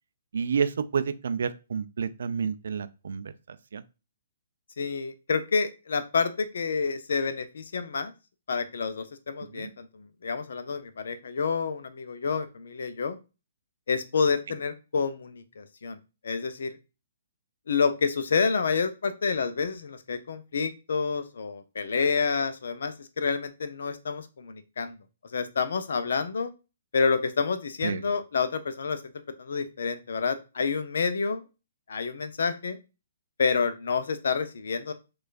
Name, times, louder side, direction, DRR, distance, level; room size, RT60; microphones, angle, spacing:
voice 1, 0.3-3.3 3.7-3.8 9.5-9.7 27.8-28.0, right 6 dB, 60° right, 0.4 m, -29 dB
voice 2, 4.8-8.1 8.5-9.9 10.2-13.2 13.9-16.0 16.2-16.8 17.7-25.0 25.3-26.5 26.9-29.0 29.4-31.4 31.9-32.8 33.4-34.9, left 5 dB, 60° left, 0.6 m, -28 dB
6.2 x 2.4 x 2.4 m
figure-of-eight pair, 125°, 0 cm